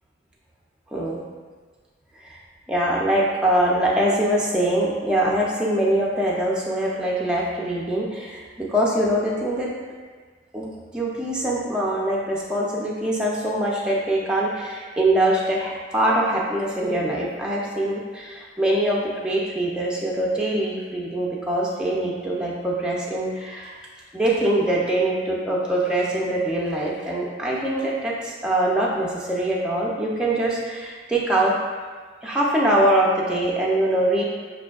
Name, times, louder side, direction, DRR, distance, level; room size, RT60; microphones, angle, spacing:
voice 1, 2.7-9.7 10.5-23.8 24.1-31.5 32.2-34.2, right 1 dB, 5° right, -5 dB, 0.4 m, -23 dB
5.7 x 2.5 x 2.3 m, 1.5 s
head